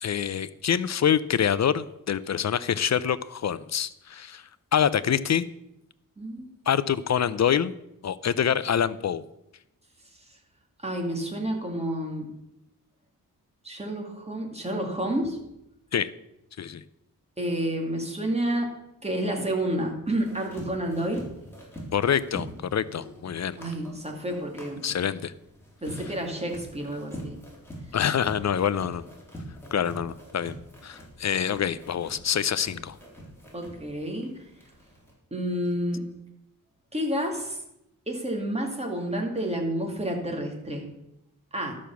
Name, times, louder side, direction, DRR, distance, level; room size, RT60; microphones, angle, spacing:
voice 1, 0.0-5.5 6.7-7.7 8.0-9.2 15.9-16.1 16.6-16.8 21.9-23.6 24.8-25.3 27.9-29.0 29.7-30.6 30.8-33.0, left 8 dB, 55° left, 16 dB, 0.5 m, -26 dB
voice 2, 6.2-6.5 10.8-12.3 13.6-15.4 17.4-18.7 19.0-21.2 23.6-24.8 25.8-27.4 33.5-34.3 35.3-36.0 36.9-37.6 38.1-40.9 41.5-41.7, right 1 dB, 20° right, 2 dB, 2.3 m, -29 dB
sound 1, 20.1-35.1, equal, 5° left, 3.8 m, -45 dB
12.0 x 6.3 x 7.0 m, 0.84 s
wide cardioid pair, 115°, 34 cm